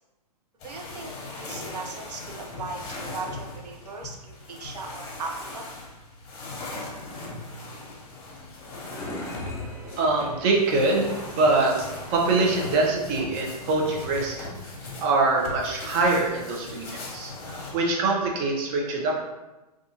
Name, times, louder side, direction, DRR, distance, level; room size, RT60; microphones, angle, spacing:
sound 1, 0.6-17.7, left 2 dB, 35° left, 0.8 m, -39 dB
voice 1, 0.6-5.7, right 3 dB, 80° right, 2 dB, 0.6 m, -38 dB
sound 2, 8.0-11.5, left 1 dB, 15° left, 0.4 m, -42 dB
voice 2, 9.8-14.5 15.0-19.2, right 3 dB, 35° right, 0 dB, 0.6 m, -24 dB
2.5 x 2.3 x 2.7 m, 1.1 s
hypercardioid pair, 120°, 20 cm